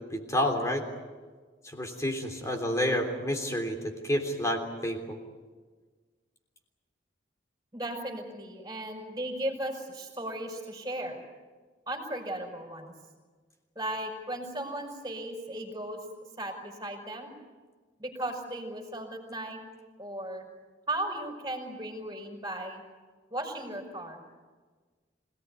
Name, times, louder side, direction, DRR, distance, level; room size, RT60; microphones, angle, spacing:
voice 1, 0.1-0.9 1.6-3.8 4.0-5.2, left 1 dB, 15° left, 3 dB, 3.4 m, -29 dB
voice 2, 7.7-11.2 11.9-12.9 13.8-16.0 16.4-17.3 18.0-19.6 20.0-20.5 20.9-22.8 23.3-24.2, right 1 dB, 20° right, 2 dB, 5.4 m, -36 dB
26.5 x 18.5 x 9.6 m, 1.4 s
head